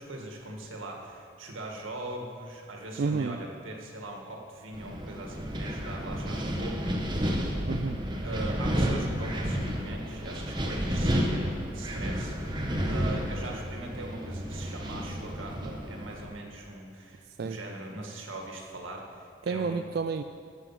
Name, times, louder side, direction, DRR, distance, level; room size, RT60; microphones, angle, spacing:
voice 1, 0.0-7.4 8.2-19.9, right 2 dB, 90° right, 1 dB, 1.9 m, -41 dB
voice 2, 3.0-3.4 7.7-8.0 17.4-17.6 19.5-20.2, right 4 dB, 50° right, 7 dB, 0.3 m, -30 dB
Wind, 4.7-16.2, equal, 25° right, 1.1 m, -31 dB
13.0 x 8.1 x 5.9 m, 2.3 s
head